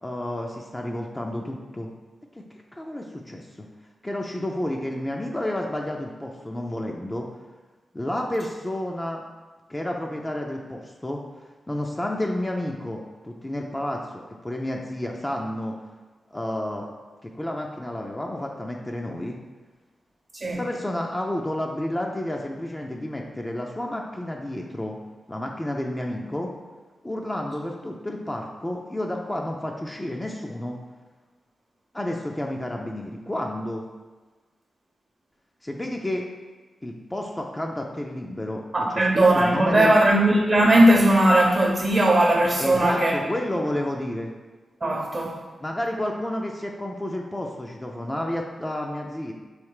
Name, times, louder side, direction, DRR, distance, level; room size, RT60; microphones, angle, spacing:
voice 1, 0.0-1.9 2.4-2.5 2.7-3.5 4.0-7.3 7.9-9.2 9.7-11.2 11.7-15.8 16.3-16.9 17.2-19.4 20.5-25.0 25.3-26.5 27.0-30.8 31.9-33.8 35.6-36.2 36.8-38.6 38.9-40.0 42.6-44.3 45.6-49.3, left 1 dB, 20° left, 0 dB, 0.4 m, -30 dB
voice 2, 38.7-43.1 44.8-45.4, right 1 dB, 40° right, -2 dB, 0.7 m, -18 dB
3.2 x 3.1 x 4.8 m, 1.3 s
cardioid pair, 65°, 0 cm